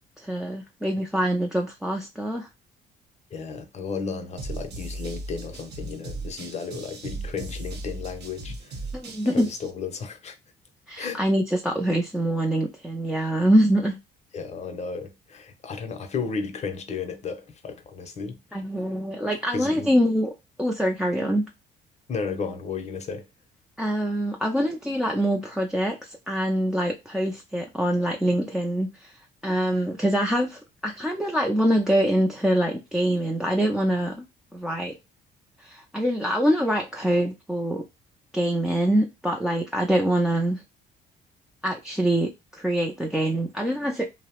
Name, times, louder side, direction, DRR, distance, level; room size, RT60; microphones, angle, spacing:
voice 1, 0.2-2.5 8.9-9.5 10.9-14.0 18.5-20.3 20.6-21.5 23.8-29.2 29.4-34.2 34.5-34.9 35.6-37.8 38.3-40.6 41.6-44.1, right 1 dB, 5° right, 0.4 m, -24 dB
voice 2, 3.3-8.8 9.2-10.4 11.0-11.2 14.3-18.4 19.3-19.9 22.1-23.3, left 5 dB, 40° left, 0.6 m, -33 dB
sound 1, 4.4-9.7, right 2 dB, 65° right, 0.8 m, -37 dB
2.7 x 2.0 x 2.8 m
cardioid pair, 105°, 18 cm